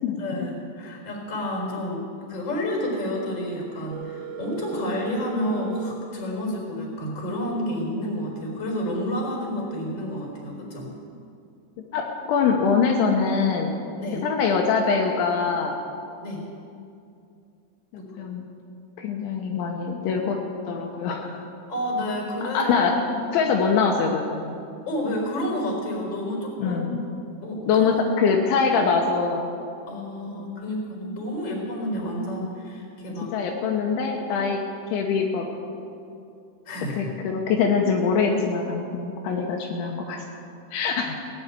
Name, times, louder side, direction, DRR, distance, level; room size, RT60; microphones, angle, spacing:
voice 1, 0.2-10.9 14.0-14.2 16.2-16.4 18.0-18.3 21.7-22.7 23.0-23.3 24.9-26.8 27.4-28.0 29.9-33.3 36.6-37.0, left 1 dB, 25° left, -1 dB, 4.2 m, -30 dB
Telephone, 3.9-5.9, right 7 dB, 75° right, 3.9 m, -37 dB
voice 2, 11.9-13.7 14.2-15.8 17.9-18.4 19.0-20.4 20.7-21.4 22.5-23.0 23.3-24.5 26.6-27.0 27.7-29.4 30.4-30.6 33.3-34.6 34.9-35.5 37.0-40.2 40.7-41.2, left 5 dB, 80° left, 1 dB, 3.3 m, -23 dB
18.0 x 7.9 x 9.3 m, 2.5 s
omnidirectional pair, 5.6 m